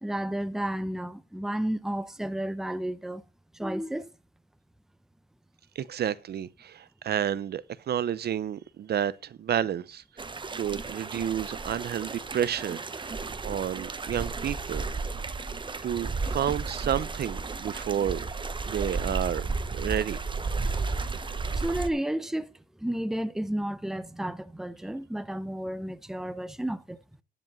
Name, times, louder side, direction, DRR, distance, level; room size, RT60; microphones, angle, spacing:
voice 1, 0.0-3.2 3.5-4.1 21.5-22.5 22.8-27.0, right 1 dB, ahead, 0.7 m, -32 dB
voice 2, 5.8-10.0 10.6-14.9 15.5-18.2 18.7-20.2, right 9 dB, 55° right, 0.6 m, -31 dB
sound 1, 10.2-21.9, right 4 dB, 25° right, 1.0 m, -33 dB
11.0 x 5.2 x 7.5 m
cardioid pair, 90°, 20 cm